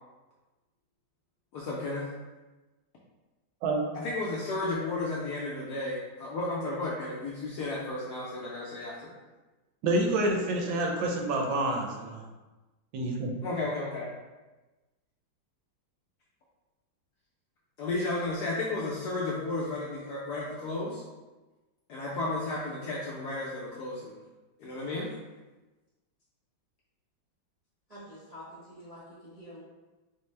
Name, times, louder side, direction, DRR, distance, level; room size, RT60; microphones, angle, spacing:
voice 1, 1.5-2.1 3.9-9.1 13.4-14.1 17.8-21.0 21.9-24.1 24.6-25.1, left 2 dB, 75° left, -5 dB, 0.9 m, -33 dB
voice 2, 9.8-12.2 12.9-13.3, right 2 dB, 75° right, 1 dB, 1.3 m, -28 dB
voice 3, 27.9-29.6, equal, 50° right, -10 dB, 0.4 m, -47 dB
4.3 x 2.0 x 3.1 m, 1.2 s
omnidirectional pair, 2.2 m